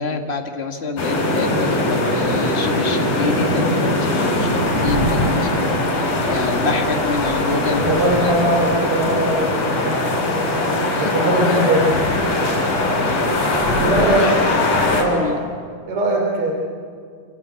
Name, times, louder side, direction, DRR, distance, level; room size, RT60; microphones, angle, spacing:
voice 1, 0.0-8.3 10.9-11.8 13.6-14.5 15.1-15.4, left 3 dB, 90° left, 3 dB, 0.5 m, -27 dB
sound 1, 1.0-15.0, left 1 dB, 70° left, 5.9 m, -20 dB
voice 2, 7.8-10.2 11.0-12.1 13.8-14.3 15.0-15.3 15.9-16.5, right 1 dB, 45° right, 1 dB, 4.2 m, -20 dB
26.5 x 26.0 x 8.1 m, 2.1 s
omnidirectional pair, 3.8 m